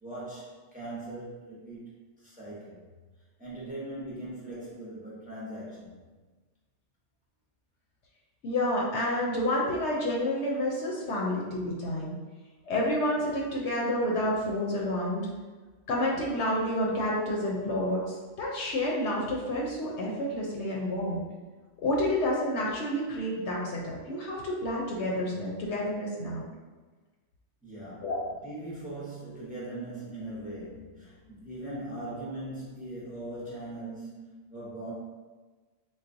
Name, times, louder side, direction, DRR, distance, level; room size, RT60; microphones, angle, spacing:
voice 1, 0.0-2.8 3.4-6.1 27.6-34.9, right 1 dB, 10° right, -7 dB, 0.7 m, -40 dB
voice 2, 8.4-12.1 12.7-15.3 15.9-21.2 21.8-26.5 28.0-28.2, left 1 dB, 75° left, -4 dB, 0.9 m, -29 dB
3.9 x 2.2 x 2.5 m, 1.3 s
omnidirectional pair, 1.2 m